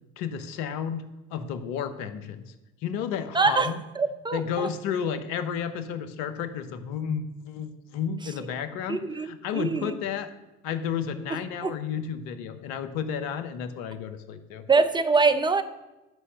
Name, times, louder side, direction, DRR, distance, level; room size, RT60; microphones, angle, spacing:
voice 1, 0.2-2.5 2.8-3.7 4.3-10.3 10.6-14.6, left 7 dB, 65° left, 10 dB, 1.2 m, -32 dB
voice 2, 3.3-3.7 4.0-4.7 8.9-9.9 11.6-11.7 14.7-15.6, right 4 dB, 10° right, 9 dB, 0.9 m, -24 dB
11.5 x 5.5 x 6.4 m, 1.0 s
hypercardioid pair, 65°, 38 cm